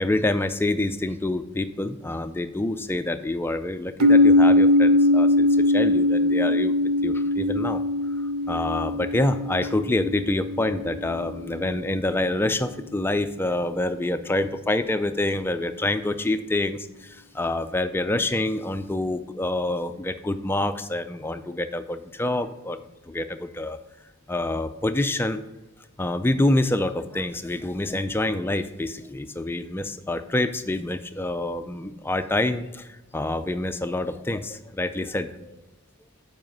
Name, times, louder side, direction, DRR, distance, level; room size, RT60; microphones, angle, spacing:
voice 1, 0.0-6.7 7.0-7.8 8.5-22.8 23.1-23.8 24.3-25.4 26.0-35.6, left 2 dB, 10° left, 9 dB, 0.3 m, -27 dB
sound 1, 4.0-11.8, left 2 dB, 85° right, 0.5 m, -21 dB
7.8 x 4.9 x 5.3 m, 1.0 s
head